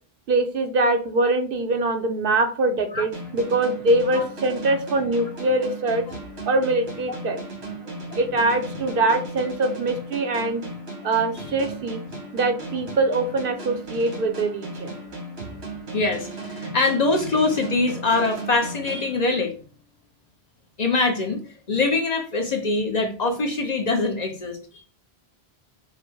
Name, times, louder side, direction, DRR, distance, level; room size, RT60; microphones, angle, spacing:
voice 1, 0.3-6.1 6.4-7.4 8.2-10.6 11.0-12.0 12.3-15.0, right 2 dB, 65° right, 6 dB, 0.8 m, -23 dB
sound 1, 3.1-19.7, right 2 dB, 85° right, 1.8 m, -36 dB
voice 2, 15.9-19.5 20.8-21.4 21.7-24.8, left 3 dB, 45° left, 4 dB, 0.7 m, -23 dB
4.8 x 2.1 x 4.5 m, 0.39 s
omnidirectional pair, 1.0 m